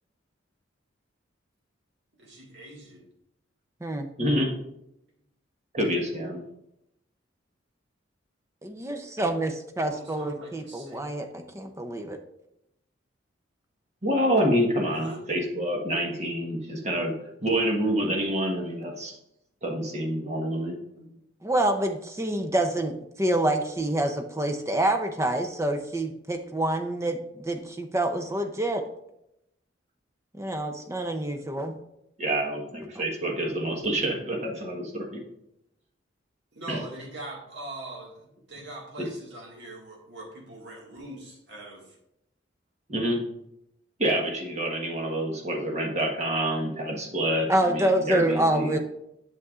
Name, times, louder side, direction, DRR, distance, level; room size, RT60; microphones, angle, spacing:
voice 1, 2.2-3.0 9.8-11.0 14.9-15.2 21.0-21.1 36.6-41.8, right 2 dB, 60° right, -2 dB, 1.9 m, -42 dB
voice 2, 4.2-4.6 5.7-6.4 14.0-17.1 17.4-19.1 19.6-20.7 32.2-35.2 36.7-36.8 39.0-39.1 42.9-43.2 44.0-48.8, right 1 dB, 35° right, 1 dB, 1.3 m, -27 dB
voice 3, 8.6-12.2 21.4-28.8 30.3-31.8 47.5-48.8, right 1 dB, 15° right, 6 dB, 0.6 m, -27 dB
8.1 x 6.7 x 2.4 m, 0.82 s
head